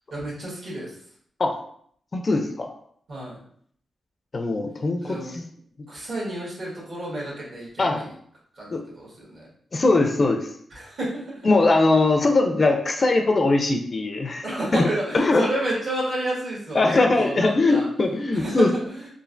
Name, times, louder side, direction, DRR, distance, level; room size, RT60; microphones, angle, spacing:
voice 1, 0.1-0.9 3.1-3.4 5.0-5.4 5.9-8.1 8.6-9.4 10.7-11.4 14.4-17.9 18.3-19.1, right 1 dB, 60° right, -5 dB, 1.4 m, -30 dB
voice 2, 2.1-2.8 4.3-5.5 7.8-8.0 8.7-8.8 9.7-10.5 11.4-15.5 16.7-18.7, left 2 dB, 35° left, 4 dB, 0.3 m, -21 dB
3.2 x 2.5 x 2.5 m, 0.62 s
wide cardioid pair, 120°, 0 cm